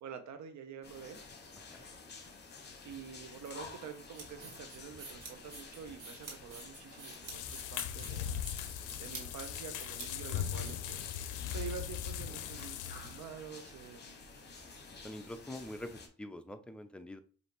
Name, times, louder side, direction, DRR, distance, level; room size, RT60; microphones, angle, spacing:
voice 1, 0.0-1.2 2.8-8.3 9.0-11.0 11.5-14.2, right 7 dB, 70° right, 0.8 m, -47 dB
sound 1, 0.8-16.1, left 4 dB, 35° left, 1.0 m, -51 dB
sound 2, 3.9-11.3, right 4 dB, 85° right, 1.6 m, -49 dB
sound 3, 7.3-13.3, left 10 dB, 80° left, 0.5 m, -39 dB
voice 2, 14.9-17.2, left 1 dB, 5° left, 0.4 m, -45 dB
5.0 x 2.7 x 2.9 m
cardioid pair, 90°, 30 cm